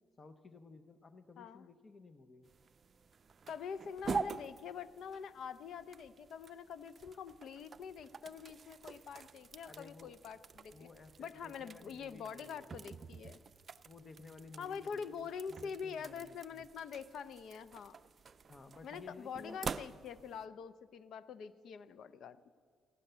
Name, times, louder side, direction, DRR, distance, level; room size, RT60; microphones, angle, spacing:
voice 1, 0.2-2.5 9.6-10.1 10.7-12.9 13.8-15.1 15.5-16.7 18.5-19.6, left 3 dB, 35° left, 10 dB, 0.7 m, -55 dB
sound 1, 2.4-20.5, right 5 dB, 40° right, 0.4 m, -47 dB
voice 2, 3.5-10.9 11.2-13.4 14.6-18.0 18.8-22.4, left 6 dB, 70° left, 15 dB, 0.5 m, -45 dB
15.0 x 11.5 x 6.7 m, 2.1 s
cardioid pair, 90°, 0 cm